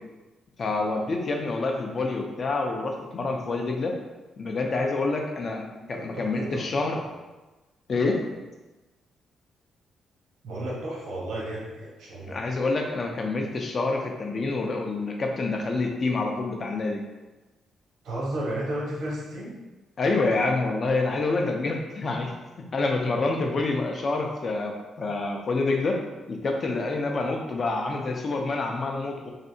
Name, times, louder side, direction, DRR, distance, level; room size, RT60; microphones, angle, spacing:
voice 1, 0.6-3.9 4.4-7.0 7.9-8.2 12.3-17.0 20.0-22.3 22.6-26.0 26.3-29.3, left 3 dB, 45° left, 2 dB, 0.5 m, -27 dB
voice 2, 6.0-6.8 10.4-12.4 18.0-19.5, right 1 dB, 85° right, -4 dB, 1.0 m, -33 dB
3.2 x 2.7 x 2.7 m, 1.1 s
cardioid pair, 110°, 0 cm